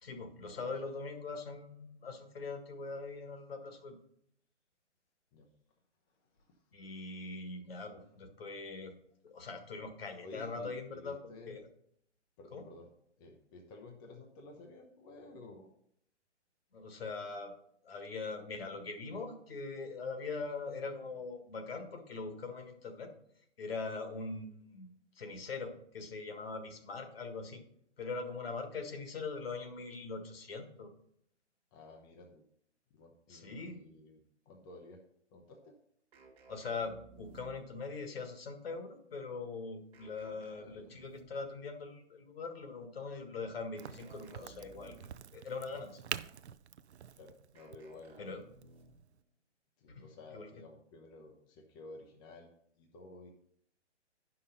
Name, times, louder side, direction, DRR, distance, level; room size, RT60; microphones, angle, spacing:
voice 1, 0.0-4.0 6.7-8.9 9.2-11.6 12.5-12.6 16.7-17.5 17.8-23.1 23.6-24.9 25.2-27.6 28.0-30.9 33.3-33.8 36.5-45.0 45.3-46.0 48.2-48.4 49.9-50.5, left 4 dB, 55° left, 7 dB, 1.6 m, -42 dB
voice 2, 10.2-11.6 12.4-12.9 13.2-15.7 31.7-32.4 32.9-35.0 35.3-35.8 40.6-40.9 47.1-48.4 49.8-53.3, left 2 dB, 15° left, 1 dB, 0.7 m, -53 dB
sound 1, 36.1-37.9 39.9-41.6 43.7-45.3 47.5-49.1, right 4 dB, 15° right, 1.4 m, -58 dB
Crack, 43.8-49.2, right 8 dB, 65° right, 0.5 m, -46 dB
9.6 x 5.8 x 5.4 m, 0.70 s
figure-of-eight pair, 130°, 36 cm